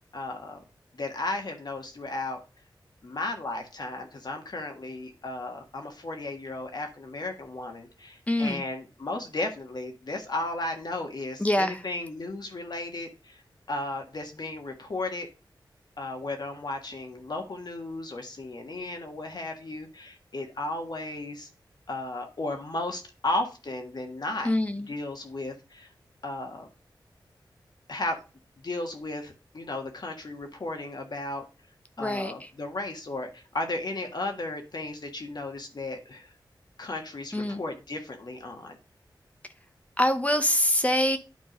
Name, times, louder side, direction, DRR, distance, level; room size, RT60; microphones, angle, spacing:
voice 1, 0.1-0.6 0.9-2.4 3.0-13.4 13.7-15.3 16.0-21.5 21.9-24.5 24.9-25.9 26.2-26.7 27.9-28.2 28.6-31.4 32.0-36.3 36.8-38.8, left 2 dB, 55° left, 1.5 m, -34 dB
voice 2, 8.3-8.6 11.4-11.8 24.4-24.9 32.0-32.3 37.3-37.6 40.0-41.2, left 1 dB, 15° left, 0.8 m, -24 dB
9.5 x 3.8 x 5.0 m
wide cardioid pair, 80°, 8 cm